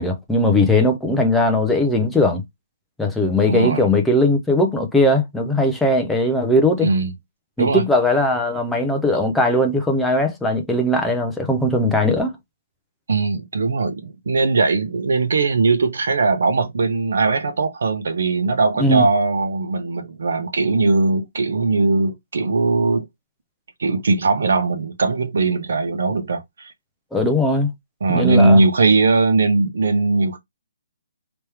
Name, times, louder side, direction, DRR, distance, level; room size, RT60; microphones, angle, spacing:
voice 1, 0.0-2.4 3.0-6.9 7.6-12.4 18.8-19.1 27.1-27.7 28.1-28.6, left 1 dB, ahead, 0.4 m, -19 dB
voice 2, 3.4-3.8 6.8-7.1 7.6-7.8 13.1-23.1 23.8-26.7 28.0-30.4, right 3 dB, 55° right, 1.0 m, -19 dB
3.3 x 3.0 x 3.2 m
hypercardioid pair, 180°, 0 cm